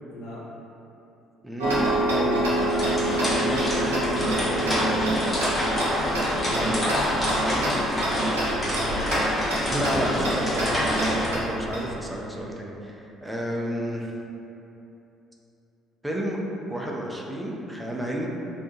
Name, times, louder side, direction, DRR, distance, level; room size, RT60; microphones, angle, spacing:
voice 1, 0.1-0.4 6.6-9.1 11.5-12.2, left 1 dB, 65° left, -8 dB, 0.7 m, -37 dB
voice 2, 1.4-5.1 6.5-6.8 9.7-14.1 16.0-16.4 16.7-18.3, equal, 5° right, -2 dB, 0.4 m, -31 dB
Tick-tock, 1.6-11.8, right 1 dB, 80° right, 0.4 m, -28 dB
sound 1, 2.5-11.3, equal, 20° left, 0.9 m, -26 dB
2.6 x 2.1 x 2.7 m, 2.9 s
figure-of-eight pair, 50°, 0 cm